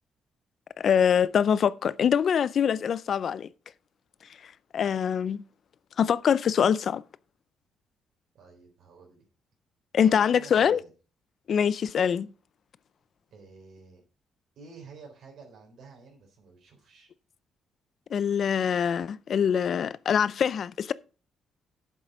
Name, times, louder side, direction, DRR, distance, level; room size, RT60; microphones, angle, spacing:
voice 1, 0.8-3.5 4.7-5.4 6.0-7.0 9.9-10.8 11.5-12.3 18.1-20.9, left 8 dB, 55° left, 0.4 m, -24 dB
voice 2, 8.3-9.2 10.0-10.9 13.3-14.0 14.6-17.1, right 4 dB, 70° right, 3.6 m, -50 dB
8.0 x 7.4 x 5.1 m
cardioid pair, 90°, 0 cm